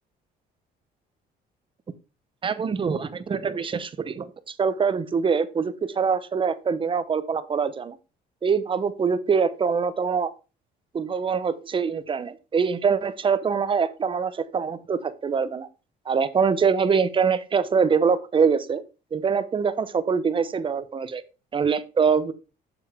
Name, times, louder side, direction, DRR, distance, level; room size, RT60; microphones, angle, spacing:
voice 1, 2.4-8.0 8.4-10.3 10.9-15.7 16.1-18.8 19.1-21.2 21.5-22.3, right 6 dB, 30° right, 13 dB, 0.7 m, -24 dB
7.1 x 7.0 x 3.5 m, 0.31 s
cardioid pair, 110°, 17 cm